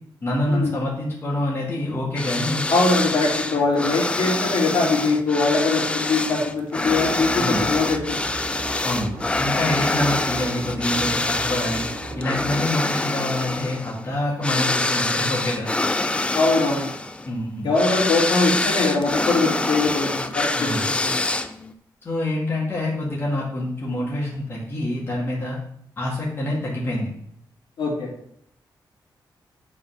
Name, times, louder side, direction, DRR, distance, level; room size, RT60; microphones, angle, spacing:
voice 1, 0.2-2.6 7.4-7.6 8.8-11.8 12.1-15.7 17.2-17.7 20.6-20.9 22.0-25.6 26.0-27.1, left 1 dB, 30° left, -4 dB, 1.8 m, -26 dB
sound 1, 2.2-21.7, left 2 dB, 15° left, 0.4 m, -25 dB
voice 2, 2.7-8.2 9.8-9.9 16.3-16.9 17.6-21.2 27.8-28.1, left 3 dB, 70° left, -2 dB, 2.4 m, -22 dB
sound 2, 6.8-12.6, right 2 dB, 45° right, 1.0 m, -36 dB
7.9 x 4.2 x 5.6 m, 0.68 s
wide cardioid pair, 165°, 8 cm